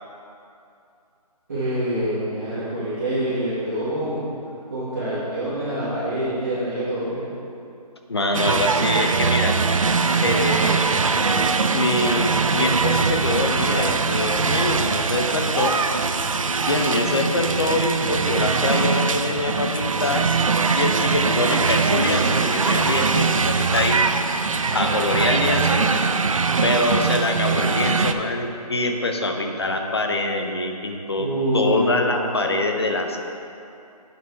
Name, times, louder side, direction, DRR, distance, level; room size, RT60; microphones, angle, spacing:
voice 1, 1.5-4.2 4.7-7.2 31.2-32.5, right 1 dB, 25° right, -15 dB, 1.7 m, -26 dB
voice 2, 8.1-9.5 10.2-10.8 11.7-15.7 16.7-20.3 20.8-24.0 24.7-25.9 26.6-31.3 31.5-33.2, left 2 dB, 40° left, 4 dB, 0.7 m, -24 dB
sound 1, 8.3-28.1, right 4 dB, 55° right, 0.4 m, -21 dB
8.8 x 6.2 x 4.6 m, 2.6 s
hypercardioid pair, 175°, 20 cm